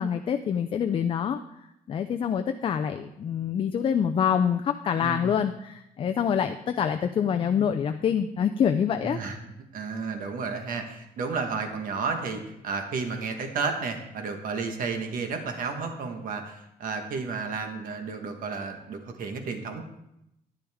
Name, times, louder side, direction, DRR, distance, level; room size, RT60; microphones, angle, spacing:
voice 1, 0.0-1.4 1.9-9.2, left 8 dB, 35° left, 7 dB, 0.4 m, -26 dB
voice 2, 5.0-5.4 9.0-19.8, right 4 dB, 60° right, 5 dB, 1.4 m, -32 dB
10.0 x 10.0 x 3.5 m, 0.84 s
cardioid pair, 165°, 16 cm